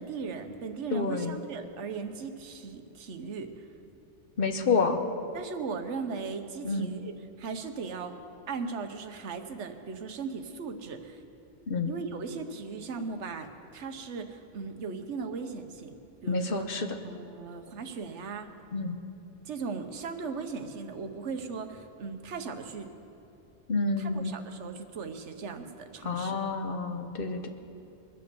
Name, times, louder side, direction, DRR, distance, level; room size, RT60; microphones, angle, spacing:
voice 1, 0.0-3.5 5.3-8.2 8.5-11.2 11.8-15.9 16.2-16.7 17.0-18.5 19.4-22.9 24.0-26.4, right 5 dB, 70° right, 7 dB, 1.3 m, -38 dB
voice 2, 0.9-1.3 4.4-5.0 6.6-6.9 11.7-11.9 16.3-16.9 18.7-19.0 23.7-24.3 26.0-27.5, left 4 dB, 50° left, 7 dB, 1.1 m, -28 dB
22.5 x 7.9 x 6.9 m, 2.8 s
omnidirectional pair, 1.2 m